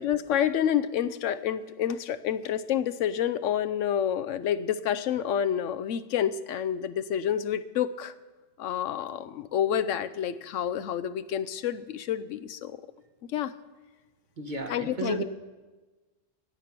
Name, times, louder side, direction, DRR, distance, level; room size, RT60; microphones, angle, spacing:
voice 1, 0.0-8.1 8.6-12.8 13.3-13.5 14.7-15.2, left 9 dB, 80° left, 12 dB, 1.0 m, -28 dB
voice 2, 14.4-15.2, right 3 dB, 40° right, 4 dB, 1.1 m, -33 dB
16.0 x 8.3 x 6.0 m, 1.2 s
omnidirectional pair, 1.3 m